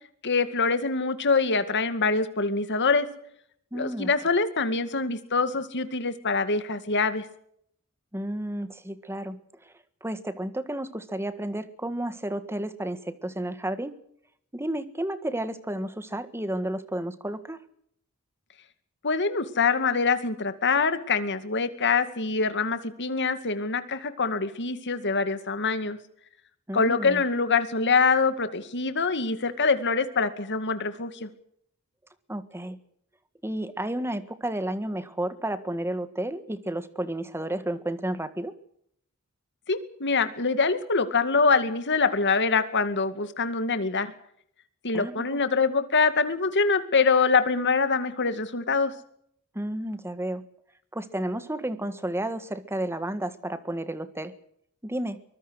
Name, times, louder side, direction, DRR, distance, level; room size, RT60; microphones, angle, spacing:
voice 1, 0.2-3.1 3.7-7.3 19.0-26.0 26.7-31.3 39.7-44.1 44.8-48.9, left 4 dB, 55° left, 11 dB, 2.2 m, -24 dB
voice 2, 3.7-4.1 8.1-9.7 10.0-13.9 14.5-17.6 26.7-27.2 32.3-32.8 33.4-38.5 44.9-45.4 49.5-50.4 50.9-54.3 54.8-55.2, right 1 dB, 10° right, 12 dB, 1.7 m, -32 dB
23.5 x 20.5 x 6.5 m, 0.69 s
head